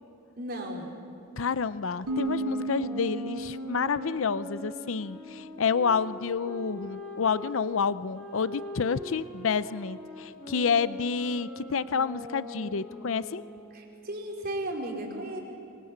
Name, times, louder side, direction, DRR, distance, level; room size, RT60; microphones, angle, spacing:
voice 1, 0.4-0.9 13.7-15.4, right 1 dB, 45° right, 0 dB, 4.6 m, -35 dB
voice 2, 1.4-13.4, left 5 dB, 65° left, 15 dB, 0.6 m, -29 dB
sound 1, 1.9-7.5 8.1-13.7, left 1 dB, 5° left, 5.2 m, -42 dB
sound 2, 2.1-5.7, right 2 dB, 85° right, 0.8 m, -35 dB
25.0 x 24.5 x 8.8 m, 2.6 s
head